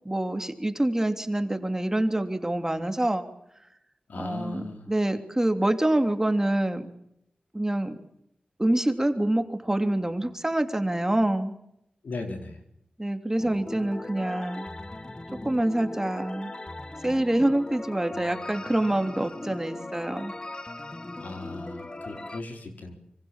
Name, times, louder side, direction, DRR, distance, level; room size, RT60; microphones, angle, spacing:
voice 1, 0.0-3.2 4.1-6.9 7.5-8.0 8.6-11.5 13.0-14.7 15.4-16.5 17.0-20.3, right 1 dB, 20° right, 7 dB, 3.0 m, -26 dB
voice 2, 4.1-4.9 12.0-12.6 18.1-18.4 21.2-23.0, left 3 dB, 80° left, 5 dB, 4.5 m, -38 dB
sound 1, 13.4-22.4, left 2 dB, 30° left, 1.6 m, -39 dB
25.5 x 24.0 x 7.4 m, 0.77 s
cardioid pair, 50°, 3 cm